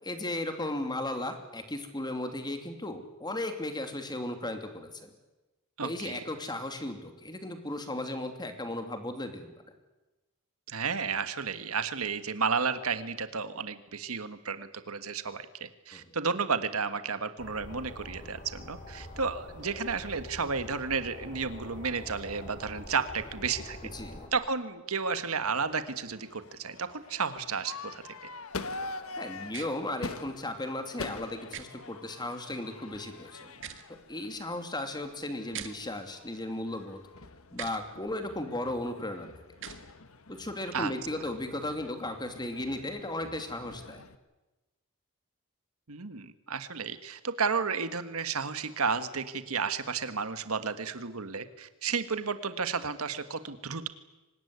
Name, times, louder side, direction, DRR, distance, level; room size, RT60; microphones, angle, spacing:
voice 1, 0.0-5.1 5.8-9.5 15.9-16.1 23.9-24.3 29.2-33.5 33.9-37.0 37.5-39.3 40.3-44.0, left 1 dB, 20° left, 6 dB, 2.8 m, -36 dB
voice 2, 5.8-6.2 10.7-23.8 24.3-28.0 40.7-40.9 45.9-53.9, right 5 dB, 85° right, 10 dB, 1.6 m, -32 dB
sound 1, 17.4-24.3, left 1 dB, 40° left, 4.6 m, -45 dB
Crowd / Fireworks, 25.2-44.2, left 3 dB, 75° left, 1.4 m, -45 dB
sound 2, 29.5-29.7 31.5-31.7 33.5-33.9 35.5-35.7 37.5-37.8 39.5-39.8, right 9 dB, 60° right, 1.9 m, -40 dB
24.5 x 20.0 x 9.7 m, 1.1 s
head